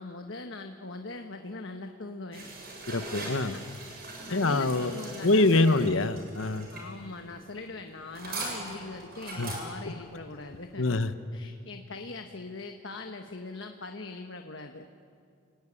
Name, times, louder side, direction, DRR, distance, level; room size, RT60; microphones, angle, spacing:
voice 1, 0.0-2.5 2.9-3.6 4.3-6.0 6.7-11.0 11.3-14.9, left 3 dB, 65° left, 5 dB, 1.3 m, -41 dB
sound 1, 2.3-11.0, right 2 dB, 50° right, 7.1 m, -42 dB
voice 2, 2.9-3.5 4.3-4.9 5.2-6.7 9.4-9.5 10.8-11.1, left 2 dB, 85° left, 11 dB, 1.1 m, -24 dB
29.5 x 18.5 x 9.9 m, 2.3 s
head